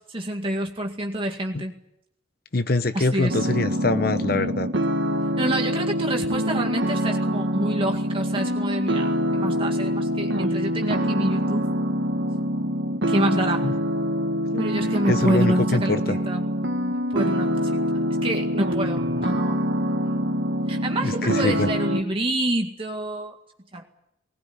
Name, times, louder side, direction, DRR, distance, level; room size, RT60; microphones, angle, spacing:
voice 1, 0.1-1.7 2.9-3.5 5.4-11.7 13.1-13.7 14.6-16.4 16.9-17.8 18.2-19.6 20.7-23.4 23.7-23.8, right 1 dB, 30° right, 2 dB, 2.1 m, -28 dB
voice 2, 2.5-4.7 13.6-13.7 14.5-16.1 21.0-21.7, left 2 dB, 55° left, 11 dB, 0.9 m, -24 dB
sound 1, 3.3-22.0, equal, 80° right, 1.7 m, -25 dB
20.5 x 19.5 x 9.6 m, 0.78 s
head